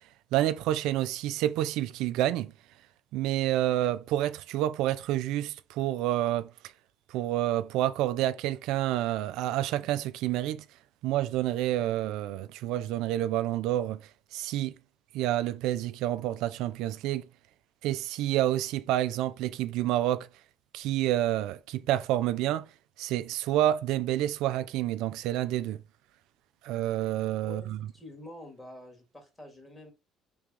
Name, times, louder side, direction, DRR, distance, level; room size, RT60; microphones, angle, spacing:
voice 1, 0.3-2.5 3.1-6.5 7.1-10.6 11.0-14.0 14.3-14.7 15.1-17.3 17.8-20.3 20.7-22.7 23.0-25.8 26.6-27.8, right 13 dB, 80° right, 0.3 m, -28 dB
voice 2, 27.4-29.9, left 1 dB, 15° left, 1.9 m, -47 dB
3.4 x 3.2 x 3.6 m
supercardioid pair, 90°, 0 cm